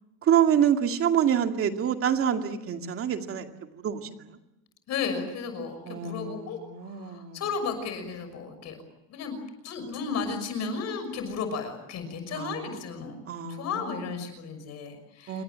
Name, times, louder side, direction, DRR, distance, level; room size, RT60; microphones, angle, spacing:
voice 1, 0.2-4.2 5.9-7.4 12.3-12.8 13.3-14.1 15.3-15.4, right 9 dB, 35° right, 5 dB, 2.3 m, -27 dB
voice 2, 4.9-8.8 9.1-9.4 9.6-13.2 13.5-15.4, left 5 dB, 45° left, 8 dB, 6.0 m, -34 dB
28.5 x 23.5 x 7.7 m, 0.93 s
cardioid pair, 170°, 37 cm